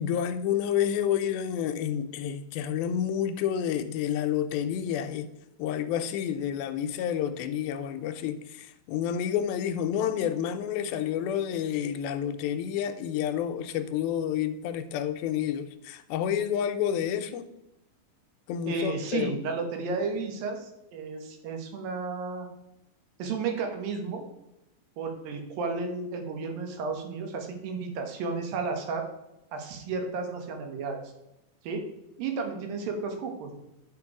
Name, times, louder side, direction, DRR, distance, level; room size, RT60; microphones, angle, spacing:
voice 1, 0.0-5.3 5.6-17.5 18.5-19.4, left 9 dB, 85° left, 10 dB, 2.4 m, -29 dB
voice 2, 18.7-22.5 23.2-24.3 25.0-29.0 29.5-31.0 31.6-31.8 32.2-33.6, right 4 dB, 75° right, 3 dB, 2.8 m, -33 dB
9.9 x 4.6 x 4.8 m, 0.88 s
omnidirectional pair, 4.2 m